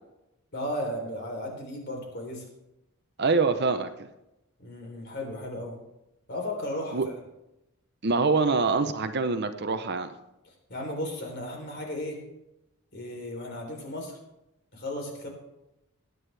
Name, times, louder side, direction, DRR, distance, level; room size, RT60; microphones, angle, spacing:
voice 1, 0.5-2.5 4.6-5.8 6.3-7.0 10.7-12.2 12.9-14.2 14.7-15.3, left 1 dB, 50° left, 1 dB, 3.6 m, -35 dB
voice 2, 3.2-3.9 6.9-7.1 8.0-10.1, right 4 dB, 50° right, 9 dB, 0.8 m, -25 dB
20.5 x 9.5 x 3.4 m, 0.91 s
head